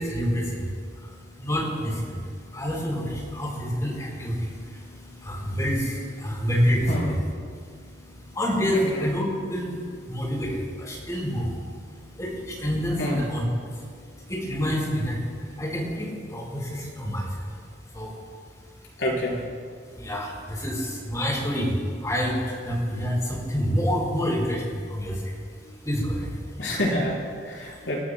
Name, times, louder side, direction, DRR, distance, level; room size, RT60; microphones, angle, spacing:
voice 1, 0.0-7.2 7.5-17.4 17.9-18.1 19.9-25.3 25.8-26.3, equal, 20° left, -4 dB, 4.0 m, -28 dB
voice 2, 8.7-9.0 13.0-13.2 19.0-19.4 25.6-25.8 26.6-28.0, left 1 dB, 90° left, -4 dB, 4.3 m, -27 dB
28.0 x 13.0 x 2.2 m, 2.1 s
head